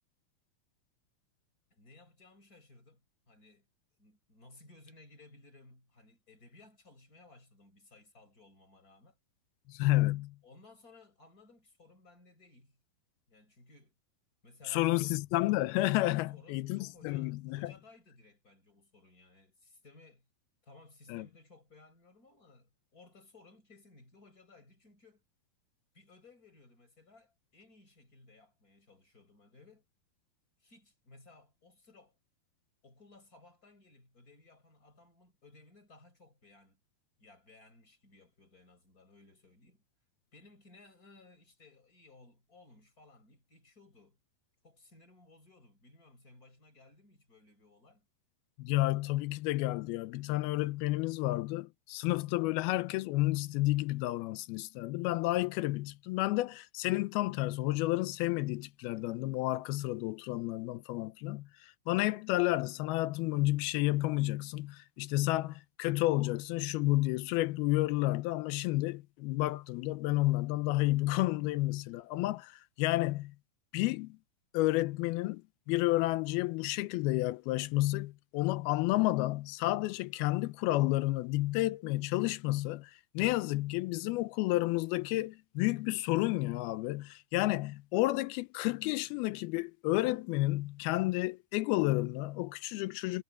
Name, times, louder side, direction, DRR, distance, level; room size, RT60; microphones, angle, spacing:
voice 1, 1.7-3.7 4.0-9.2 10.4-12.8 13.3-13.9 14.4-15.2 16.3-20.3 20.6-25.2 25.9-29.8 30.6-32.2 32.8-36.8 37.2-39.8 40.3-44.2 44.6-48.1, left 3 dB, 20° left, 6.3 m, -59 dB
voice 2, 9.7-10.4 14.7-17.7 21.1-21.3 48.6-73.3 73.7-74.2 74.5-75.4 75.7-93.2, left 18 dB, 85° left, 2.6 m, -31 dB
omnidirectional pair, 4.4 m